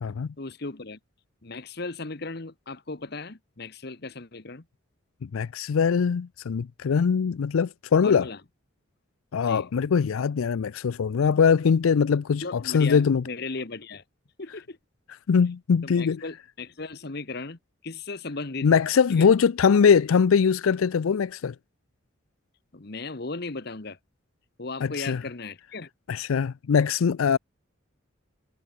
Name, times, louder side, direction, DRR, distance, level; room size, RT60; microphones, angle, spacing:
voice 1, 0.4-1.0 1.4-4.7 8.0-8.4 9.4-9.7 12.4-14.0 14.4-14.8 15.8-18.8 19.1-19.3 22.7-24.0 24.6-25.9, left 3 dB, 50° left, 1.2 m, -36 dB
voice 2, 5.3-8.3 9.3-13.2 15.3-16.2 18.6-21.5 24.8-25.2 26.1-27.4, left 6 dB, 90° left, 0.4 m, -22 dB
head